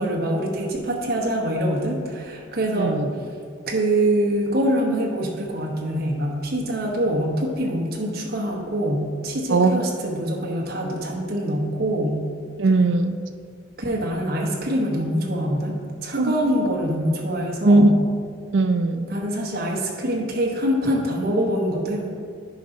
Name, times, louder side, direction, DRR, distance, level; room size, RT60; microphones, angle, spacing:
voice 1, 0.0-3.0 3.7-12.2 13.8-17.9 19.1-22.1, right 1 dB, 55° right, -1 dB, 1.1 m, -24 dB
voice 2, 2.8-3.1 9.5-9.8 12.6-13.2 16.2-16.3 17.6-17.9 18.5-19.1, right 2 dB, 75° right, 8 dB, 0.5 m, -18 dB
9.8 x 5.4 x 3.9 m, 2.1 s
head